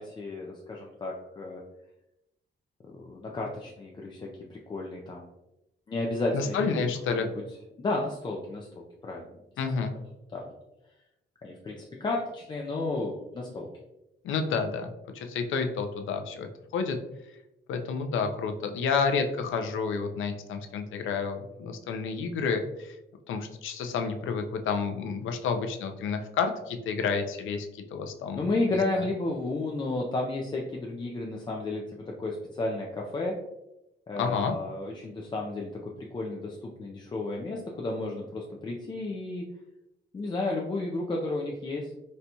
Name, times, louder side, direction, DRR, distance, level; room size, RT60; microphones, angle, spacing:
voice 1, 0.0-1.6 2.8-5.3 5.9-6.7 7.1-7.3 7.8-9.7 10.3-10.5 11.4-13.7 28.3-33.3 34.1-39.4 40.1-41.9, left 2 dB, 25° left, -2 dB, 0.3 m, -32 dB
voice 2, 6.3-7.3 9.6-9.9 14.2-14.9 15.1-16.5 16.7-17.0 17.7-22.9 23.3-28.5 34.2-34.5, left 5 dB, 90° left, 6 dB, 0.5 m, -30 dB
4.2 x 2.2 x 2.6 m, 0.91 s
wide cardioid pair, 150°, 20 cm